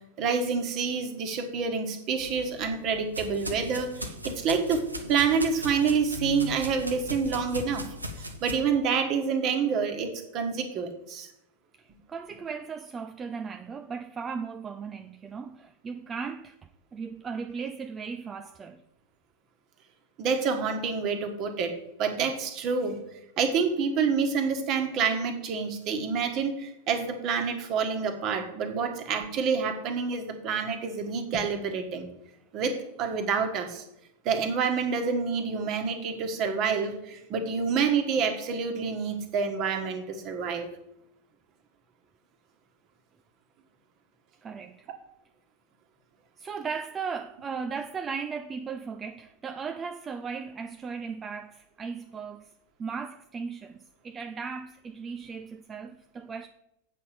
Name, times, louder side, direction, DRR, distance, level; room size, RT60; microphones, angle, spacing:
voice 1, 0.2-7.9 8.2-11.3 20.2-21.7 22.0-23.0 23.4-32.1 32.5-33.8 34.2-40.7, right 5 dB, 40° right, 1.6 m, -28 dB
sound 1, 2.2-8.5, left 1 dB, 85° right, 1.1 m, -38 dB
voice 2, 11.8-18.8 44.4-44.9 46.4-52.5 52.8-56.5, right 5 dB, 20° right, 0.5 m, -37 dB
8.2 x 5.8 x 6.9 m
figure-of-eight pair, 90°, 0 cm